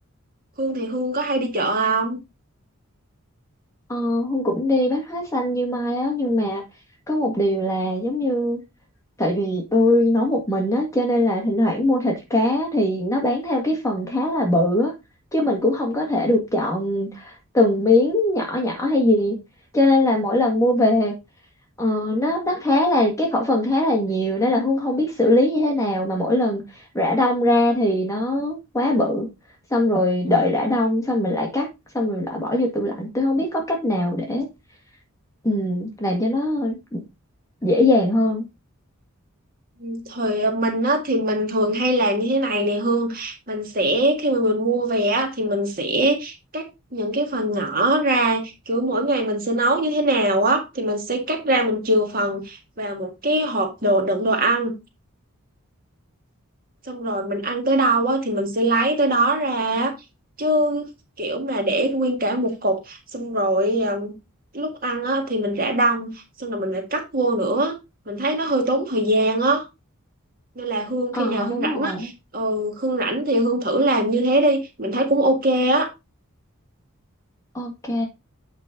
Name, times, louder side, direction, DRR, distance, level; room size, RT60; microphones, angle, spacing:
voice 1, 0.6-2.2 39.8-46.7 46.9-54.7 56.9-59.9 60.4-60.9 61.2-64.1 64.5-66.1 66.4-67.7 68.1-69.6 70.6-75.9, right 1 dB, 40° right, 1.8 m, -22 dB
voice 2, 3.9-6.6 7.1-8.6 9.2-14.9 15.3-19.4 19.7-21.1 21.8-29.3 29.7-31.7 31.9-34.5 35.4-37.0 37.6-38.5 71.1-72.1 77.5-78.1, left 1 dB, 15° left, 1.8 m, -21 dB
8.4 x 5.3 x 3.8 m
head